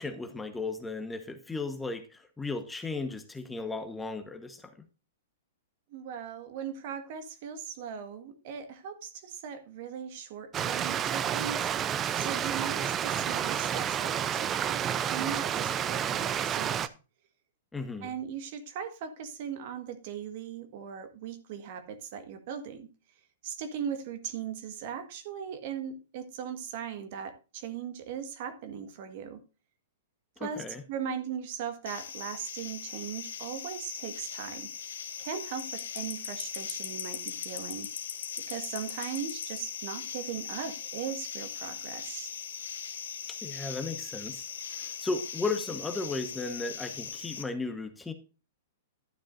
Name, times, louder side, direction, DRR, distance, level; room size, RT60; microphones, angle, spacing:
voice 1, 0.0-4.7 17.7-18.1 30.4-30.8 43.4-44.5 44.8-48.1, left 3 dB, 10° left, 8 dB, 1.2 m, -35 dB
voice 2, 5.9-16.7 18.0-22.9 23.4-29.4 30.4-34.7 35.2-37.9 38.5-42.3, right 8 dB, 55° right, 9 dB, 1.6 m, -39 dB
Stream, 10.5-16.9, right 9 dB, 25° right, 0.6 m, -30 dB
sound 1, 31.8-47.4, left 7 dB, 75° left, 2.4 m, -39 dB
11.5 x 10.0 x 2.6 m, 0.32 s
hypercardioid pair, 120°, 0 cm